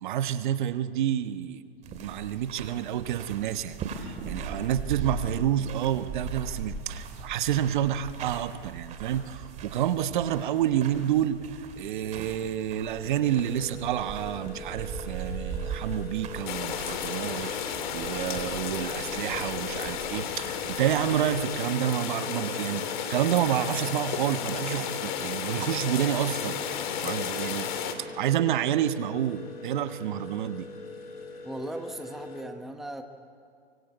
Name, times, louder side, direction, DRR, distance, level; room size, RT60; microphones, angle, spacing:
voice 1, 0.0-1.6 2.0-11.4 11.8-26.6 27.0-27.7 28.0-30.7, right 11 dB, 50° right, 11 dB, 1.2 m, -29 dB
sound 1, 1.8-21.4, right 5 dB, 25° right, 2.6 m, -40 dB
sound 2, 12.9-32.4, left 4 dB, 75° left, 3.9 m, -43 dB
sound 3, 16.5-27.9, left 8 dB, 50° left, 2.6 m, -33 dB
voice 2, 31.4-33.0, right 1 dB, ahead, 5 dB, 1.0 m, -38 dB
24.0 x 24.0 x 8.1 m, 2.3 s
hypercardioid pair, 140°, 30 cm